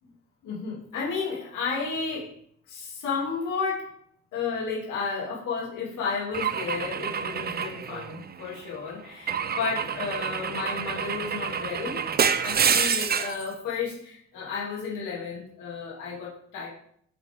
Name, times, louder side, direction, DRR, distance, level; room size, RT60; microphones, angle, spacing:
voice 1, 0.4-2.3 2.7-4.0 4.3-12.1 12.4-16.7, left 5 dB, 90° left, -5 dB, 2.7 m, -32 dB
Car / Engine / Glass, 6.3-8.6 9.3-13.4, right 7 dB, 30° right, 0.5 m, -27 dB
9.7 x 4.8 x 3.6 m, 0.65 s
cardioid pair, 90°, 30 cm